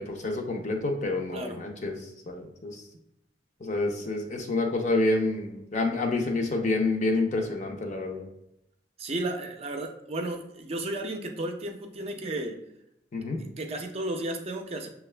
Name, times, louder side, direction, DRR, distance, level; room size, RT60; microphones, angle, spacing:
voice 1, 0.0-2.0 2.3-2.8 3.6-8.3 13.1-13.4, left 2 dB, 45° left, 2 dB, 0.6 m, -28 dB
voice 2, 9.0-12.6 13.4-14.9, right 1 dB, 35° right, 4 dB, 0.5 m, -33 dB
6.4 x 2.3 x 3.2 m, 0.83 s
head